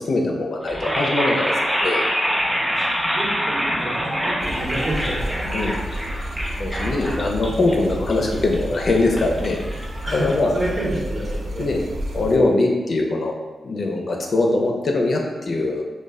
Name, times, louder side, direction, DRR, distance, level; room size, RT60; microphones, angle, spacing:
voice 1, 0.0-2.0 5.5-6.2 6.6-9.9 10.1-10.5 11.6-11.8 12.1-13.4 13.6-15.8, left 2 dB, 60° left, 1 dB, 0.4 m, -22 dB
sound 1, 0.6-10.7, equal, 5° right, 0.6 m, -26 dB
voice 2, 2.7-5.6 10.0-10.3 10.5-11.6, right 1 dB, 45° right, -7 dB, 0.7 m, -30 dB
sound 2, 4.4-12.4, equal, 70° right, 0.3 m, -31 dB
2.2 x 2.1 x 3.4 m, 1.2 s
cardioid pair, 80°, 0 cm